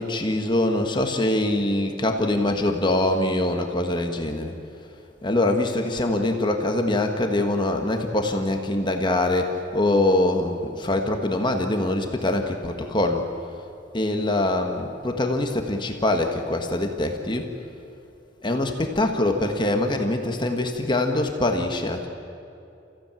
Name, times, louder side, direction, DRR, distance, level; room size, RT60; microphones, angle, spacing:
voice 1, 0.0-4.5 5.2-13.3 13.9-17.5 18.4-22.1, left 1 dB, 25° left, 4 dB, 1.5 m, -24 dB
29.5 x 15.5 x 9.0 m, 2.7 s
head